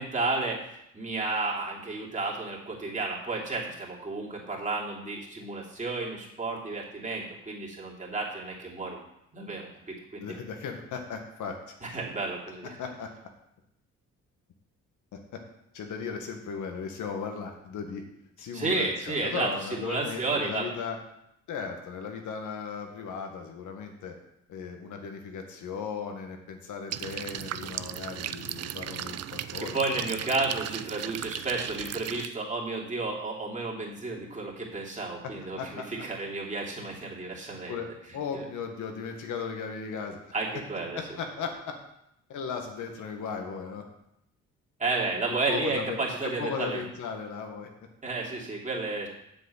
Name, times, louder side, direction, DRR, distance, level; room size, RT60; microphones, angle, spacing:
voice 1, 0.0-9.0 9.3-10.4 11.8-12.8 18.5-20.7 29.6-37.8 38.3-38.5 40.3-41.0 44.8-46.8 48.0-49.1, right 3 dB, 25° right, -3 dB, 3.0 m, -32 dB
voice 2, 10.2-11.6 12.8-13.1 15.1-15.2 15.7-18.0 18.4-21.0 21.5-24.1 24.5-30.0 35.6-35.8 37.7-40.2 40.9-41.5 42.3-43.8 45.3-46.0 46.4-47.7, left 6 dB, 75° left, 4 dB, 1.9 m, -36 dB
sound 1, 26.9-32.3, right 11 dB, 55° right, 0.5 m, -36 dB
7.8 x 7.6 x 5.9 m, 0.80 s
cardioid pair, 90°, 30 cm